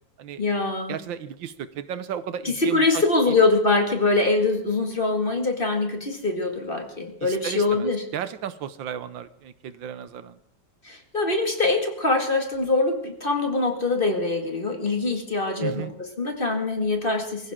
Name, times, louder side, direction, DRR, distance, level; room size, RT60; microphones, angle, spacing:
voice 1, 0.4-1.0 2.4-8.0 10.8-17.5, left 3 dB, 25° left, 4 dB, 2.2 m, -23 dB
voice 2, 0.9-3.0 7.2-10.4 15.6-15.9, right 9 dB, 75° right, 14 dB, 1.5 m, -33 dB
23.5 x 15.5 x 3.7 m, 0.73 s
omnidirectional pair, 2.1 m